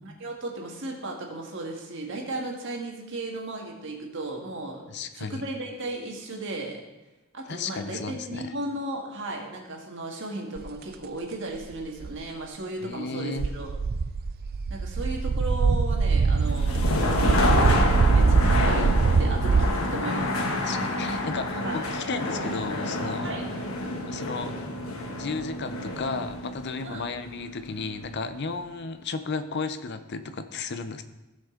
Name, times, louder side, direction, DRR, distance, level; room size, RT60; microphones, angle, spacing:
voice 1, 0.0-4.9 5.1-6.8 7.3-13.8 14.7-16.8 17.1-20.4 21.6-21.8 23.2-23.4 26.8-27.1, right 2 dB, 60° right, 0 dB, 1.7 m, -35 dB
voice 2, 4.9-5.4 7.5-8.5 12.8-13.5 20.6-23.3 24.1-24.5 25.2-31.0, left 4 dB, 55° left, 10 dB, 0.6 m, -34 dB
sound 1, 10.6-10.7 11.5-12.1 13.4-19.7, right 4 dB, 45° right, 0.3 m, -22 dB
sound 2, 16.4-28.3, left 2 dB, 85° left, 1.2 m, -29 dB
15.0 x 5.3 x 3.7 m, 1.0 s
head